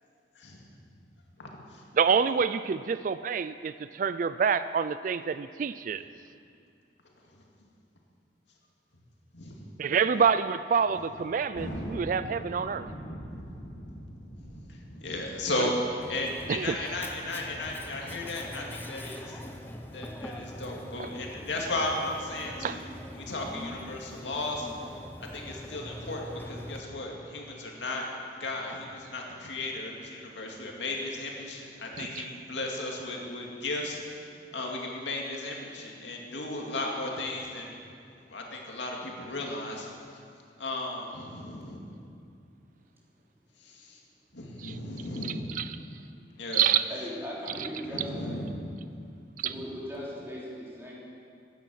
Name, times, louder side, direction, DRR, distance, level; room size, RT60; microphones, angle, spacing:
voice 1, 0.4-0.7 1.4-1.8 9.3-9.6 9.9-10.0 14.7-15.7 16.1-19.4 19.9-22.8 23.1-24.7 25.3-28.1 28.4-37.8 38.3-39.9 40.6-41.9 43.6-44.0 44.3-45.6 46.4-46.6 47.9-48.6, left 2 dB, 90° left, -1 dB, 2.3 m, -35 dB
voice 2, 2.0-6.0 9.8-12.9 16.5-16.8 21.0-21.1 22.6-22.8 32.0-32.2 44.6-44.8 45.5-45.8 46.5-46.9 49.4-49.5, right 6 dB, 45° right, 13 dB, 0.3 m, -27 dB
Thunder, 11.5-18.4, equal, 75° left, 3.3 m, -42 dB
Mechanisms, 16.0-26.8, left 1 dB, 10° left, 0.8 m, -43 dB
voice 3, 46.9-48.4 49.4-50.9, equal, 15° right, -6 dB, 3.3 m, -38 dB
15.5 x 10.0 x 6.3 m, 2.4 s
head